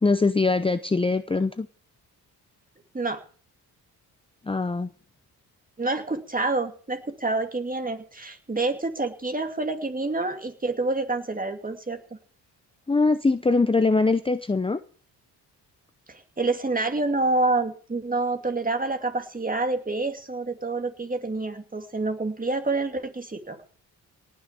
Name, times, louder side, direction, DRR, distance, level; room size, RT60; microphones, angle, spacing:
voice 1, 0.0-1.7 4.4-4.9 12.9-14.8, left 3 dB, 15° left, 12 dB, 0.7 m, -22 dB
voice 2, 5.8-12.0 16.1-23.6, right 2 dB, 20° right, 7 dB, 2.4 m, -27 dB
18.5 x 6.4 x 8.2 m, 0.43 s
cardioid pair, 80°, 39 cm